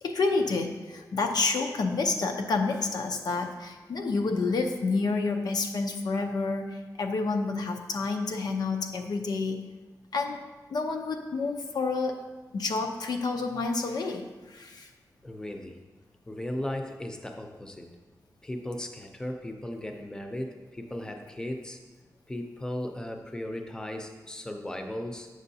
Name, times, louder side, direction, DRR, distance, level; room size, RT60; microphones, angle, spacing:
voice 1, 0.0-9.7 10.1-10.4 10.7-12.2 12.5-14.9, left 3 dB, 90° left, 4 dB, 0.6 m, -29 dB
voice 2, 15.2-15.8 16.3-17.9 18.4-21.8 22.3-25.3, left 1 dB, 10° left, 4 dB, 0.5 m, -36 dB
7.7 x 6.2 x 2.7 m, 1.2 s
wide cardioid pair, 155°, 7 cm